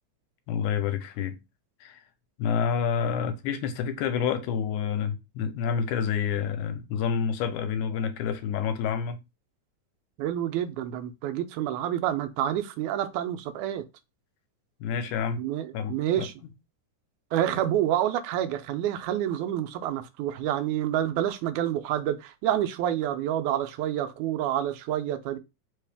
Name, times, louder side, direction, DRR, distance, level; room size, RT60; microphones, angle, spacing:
voice 1, 0.5-1.4 1.8-2.0 2.4-9.2 14.8-15.4 15.7-16.3, left 7 dB, 90° left, 2.1 m, -28 dB
voice 2, 10.2-13.9 15.4-16.3 17.3-25.4, right 11 dB, 85° right, 2.0 m, -28 dB
4.4 x 3.3 x 3.4 m
omnidirectional pair, 3.5 m